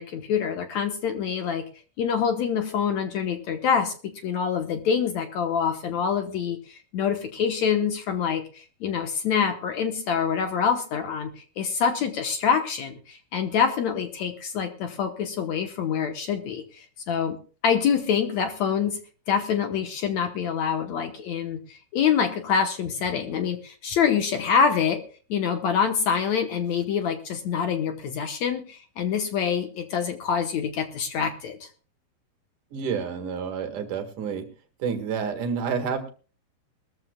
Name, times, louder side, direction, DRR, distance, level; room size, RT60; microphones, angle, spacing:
voice 1, 0.0-1.6 2.0-3.9 4.2-17.4 17.6-19.0 19.3-25.0 25.3-31.7, left 7 dB, 65° left, 6 dB, 1.8 m, -26 dB
voice 2, 32.7-34.5 34.8-36.1, right 6 dB, 60° right, 6 dB, 3.0 m, -29 dB
22.0 x 13.5 x 2.3 m, 0.38 s
omnidirectional pair, 4.5 m